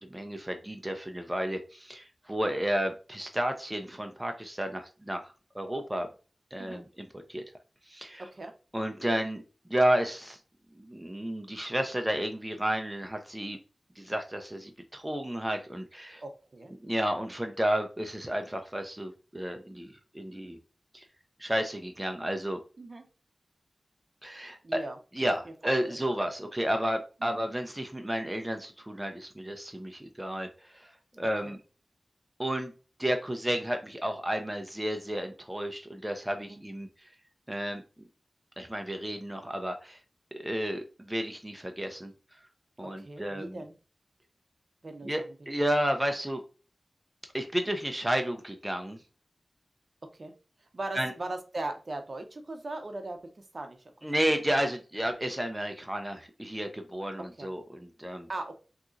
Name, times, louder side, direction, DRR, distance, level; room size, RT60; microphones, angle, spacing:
voice 1, 0.0-6.1 6.5-7.4 7.9-8.2 8.7-9.4 9.7-10.4 10.8-13.6 14.0-16.2 16.8-20.6 20.9-21.0 21.4-22.6 24.2-24.8 25.1-30.9 31.2-31.6 32.4-32.7 33.0-36.9 37.5-37.8 38.6-40.0 40.3-42.1 42.8-43.6 45.0-46.4 47.3-49.0 50.9-51.1 54.0-58.3, equal, 15° right, 5 dB, 0.5 m, -32 dB
voice 2, 16.2-16.7 22.8-23.1 24.6-26.0 27.2-27.4 31.4-31.5 36.4-36.6 43.0-43.7 44.8-45.5 50.1-50.3 50.7-54.1 57.4-57.5 58.3-58.5, right 2 dB, 55° right, 6 dB, 0.6 m, -39 dB
3.6 x 2.8 x 2.5 m, 0.34 s
wide cardioid pair, 60°, 0 cm